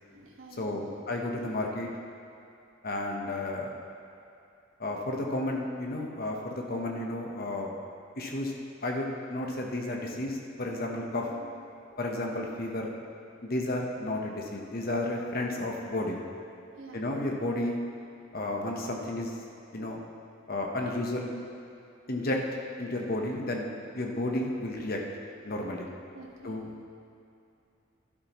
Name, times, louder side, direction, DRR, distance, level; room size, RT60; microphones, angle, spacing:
voice 1, 0.0-1.0 11.3-11.5 16.6-17.0 25.9-26.8, right 2 dB, 85° right, -1 dB, 1.5 m, -49 dB
voice 2, 0.6-1.9 2.8-3.7 4.8-7.7 8.2-8.5 8.8-11.3 12.0-12.9 13.4-16.2 16.9-17.8 18.3-19.3 19.7-20.0 20.5-21.3 22.1-22.4 22.8-25.0 25.4-25.9 26.4-26.7, left 1 dB, 50° left, 0 dB, 1.2 m, -32 dB
12.5 x 11.0 x 3.1 m, 2.6 s
head